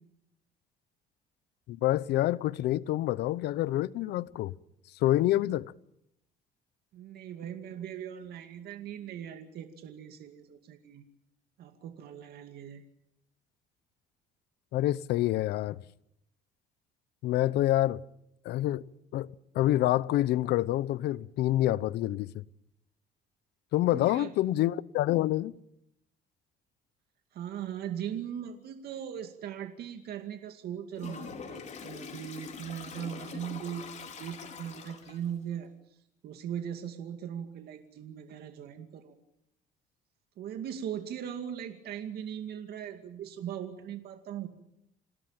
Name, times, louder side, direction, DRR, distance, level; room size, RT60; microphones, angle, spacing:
voice 1, 1.7-4.5 5.0-5.7 14.7-15.8 17.2-18.0 18.4-18.8 19.1-22.4 23.7-25.5, left 15 dB, 80° left, 0.9 m, -27 dB
voice 2, 6.9-11.0 11.6-12.8 23.8-24.3 27.3-39.2 40.4-44.5, right 9 dB, 70° right, 2.4 m, -39 dB
Toilet flush, 31.0-35.3, left 6 dB, 45° left, 4.6 m, -44 dB
27.5 x 17.5 x 9.0 m
cardioid pair, 110°, 17 cm